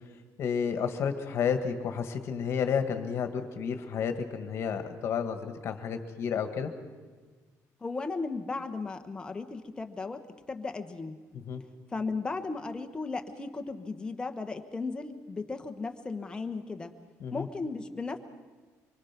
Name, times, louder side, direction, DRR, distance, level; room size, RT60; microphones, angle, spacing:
voice 1, 0.4-6.7 11.5-11.6 17.2-17.5, left 7 dB, 45° left, 8 dB, 1.8 m, -31 dB
voice 2, 7.8-10.2 10.5-11.2 11.9-16.9 17.3-18.2, left 3 dB, 15° left, 6 dB, 1.2 m, -35 dB
25.5 x 24.0 x 6.0 m, 1.4 s
cardioid pair, 175°, 6 cm